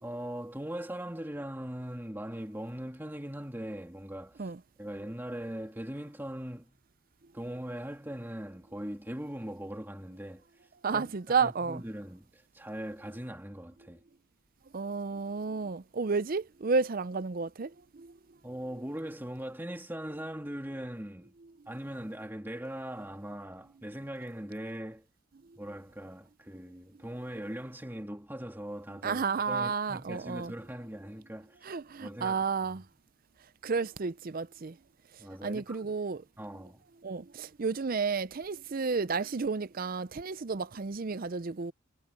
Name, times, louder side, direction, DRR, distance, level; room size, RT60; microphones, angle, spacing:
voice 1, 0.0-4.5 4.8-6.8 7.3-10.4 10.9-14.0 18.4-21.3 21.7-25.1 25.6-31.7 32.0-32.4 32.7-32.8 35.2-36.0 36.4-36.8, equal, 10° right, 2.2 m, -40 dB
voice 2, 10.8-11.8 14.7-18.1 29.0-30.5 31.7-32.8 33.6-34.7 35.4-36.2 37.0-41.7, right 5 dB, 40° right, 0.5 m, -31 dB
head